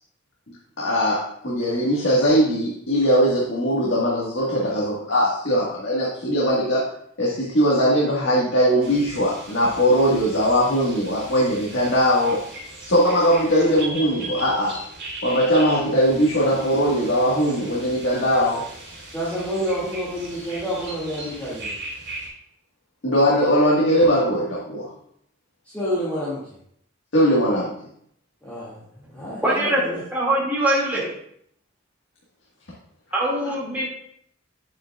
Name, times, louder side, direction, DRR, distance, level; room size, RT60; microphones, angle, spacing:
voice 1, 0.8-6.8 7.2-12.4 12.8-14.8 15.2-18.7 23.0-24.9 27.1-27.7, equal, 75° left, -5 dB, 1.6 m, -20 dB
sound 1, 8.8-22.3, right 1 dB, 65° right, 3.1 m, -38 dB
voice 2, 19.1-21.7 25.7-26.4 28.4-28.8 29.1-30.0, equal, 10° left, -11 dB, 2.2 m, -28 dB
voice 3, 29.4-29.8 30.1-31.1 33.1-33.9, right 1 dB, 10° right, -6 dB, 2.2 m, -22 dB
8.8 x 8.0 x 2.4 m, 0.69 s
head